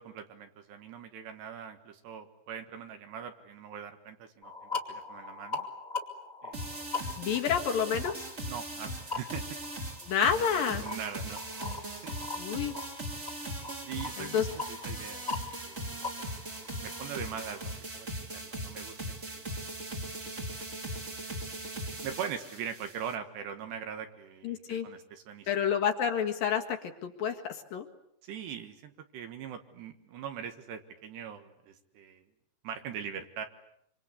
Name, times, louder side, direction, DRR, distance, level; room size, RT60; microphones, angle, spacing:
voice 1, 0.0-5.7 6.4-6.9 7.3-7.4 8.5-9.6 10.8-11.4 12.0-12.2 13.7-14.4 14.7-15.3 15.6-16.0 16.7-19.0 19.2-19.5 22.0-25.7 28.2-32.3 32.6-33.5, right 8 dB, 70° right, 7 dB, 3.6 m, -41 dB
sound 1, 4.4-17.8, left 4 dB, 15° left, 1.8 m, -42 dB
sound 2, 6.5-23.1, right 1 dB, 20° right, 2.2 m, -39 dB
voice 2, 7.2-8.3 10.0-10.8 12.4-12.7 14.2-14.5 24.4-24.9 25.5-27.9, left 8 dB, 60° left, 4 dB, 3.0 m, -29 dB
26.5 x 26.0 x 8.2 m, 0.72 s
omnidirectional pair, 5.1 m